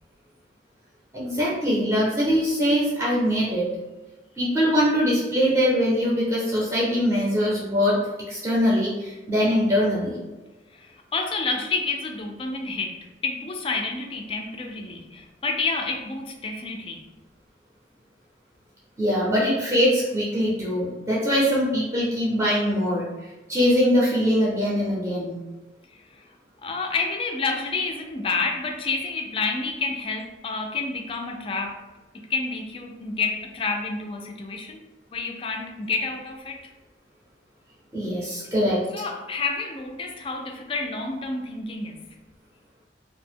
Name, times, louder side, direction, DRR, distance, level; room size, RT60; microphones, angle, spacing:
voice 1, 1.1-3.7 4.4-8.0 8.3-10.1 19.0-23.1 23.5-25.4 37.9-38.8, equal, 15° right, -7 dB, 0.6 m, -22 dB
voice 2, 10.7-17.1 25.9-26.2 26.6-31.8 32.1-34.8 35.1-36.6 38.9-42.0, left 4 dB, 30° left, 3 dB, 0.3 m, -29 dB
2.7 x 2.1 x 3.4 m, 1.1 s
head